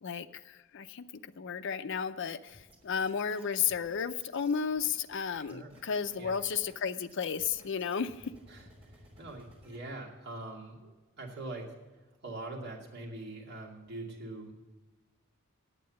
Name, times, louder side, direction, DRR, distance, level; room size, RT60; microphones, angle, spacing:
voice 1, 0.0-8.3, left 6 dB, 60° left, 11 dB, 0.5 m, -33 dB
sound 1, 2.5-9.8, equal, 30° right, 3.3 m, -57 dB
voice 2, 5.3-5.8 6.2-6.3 8.5-11.7 12.2-14.5, right 2 dB, 55° right, -3 dB, 2.4 m, -43 dB
9.1 x 8.4 x 7.6 m, 1.2 s
head